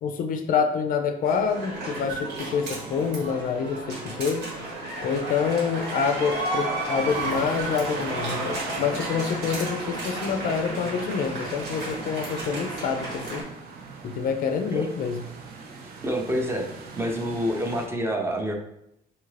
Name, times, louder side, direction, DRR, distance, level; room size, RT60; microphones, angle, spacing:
voice 1, 0.0-4.5 5.0-13.4 14.0-15.2, left 6 dB, 55° left, 6 dB, 0.4 m, -27 dB
sound 1, 1.2-13.4, right 2 dB, 85° right, 1.3 m, -33 dB
sound 2, 6.9-17.9, right 4 dB, 60° right, 0.6 m, -39 dB
voice 2, 16.0-18.5, equal, 15° right, 2 dB, 0.5 m, -27 dB
2.7 x 2.5 x 3.2 m, 0.80 s
cardioid pair, 110°, 17 cm